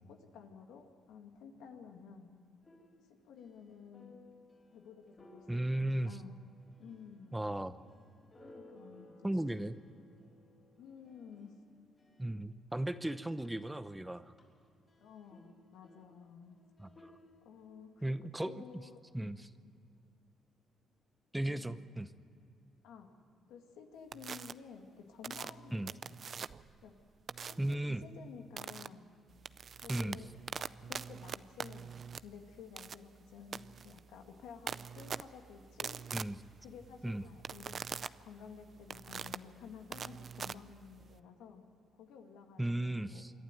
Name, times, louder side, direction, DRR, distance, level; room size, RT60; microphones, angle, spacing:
voice 1, 0.1-2.3 3.2-4.2 4.7-6.4 6.8-7.5 8.5-9.3 10.8-11.5 15.0-16.5 17.4-18.1 18.4-19.3 21.5-21.8 22.8-23.1 23.5-26.2 26.8-26.9 27.4-29.1 29.8-30.3 30.6-36.0 36.6-37.7 38.0-41.6 41.9-43.2, left 6 dB, 90° left, 4 dB, 2.1 m, -53 dB
sound 1, 2.6-12.6 12.9-18.0, left 1 dB, 30° left, 5.6 m, -62 dB
voice 2, 5.5-6.2 7.3-7.8 9.2-9.8 12.2-14.3 16.8-17.1 18.0-18.8 19.1-19.5 21.3-22.1 25.7-25.9 27.6-28.0 29.9-30.2 36.1-36.4 37.0-37.2 42.6-43.3, right 1 dB, 10° right, 12 dB, 0.8 m, -36 dB
sound 2, 24.1-24.5 25.2-26.7 27.3-27.7 28.6-28.9 29.3-41.2, right 6 dB, 50° right, 0.5 m, -43 dB
27.0 x 11.5 x 9.2 m, 2.4 s
cardioid pair, 90°, 0 cm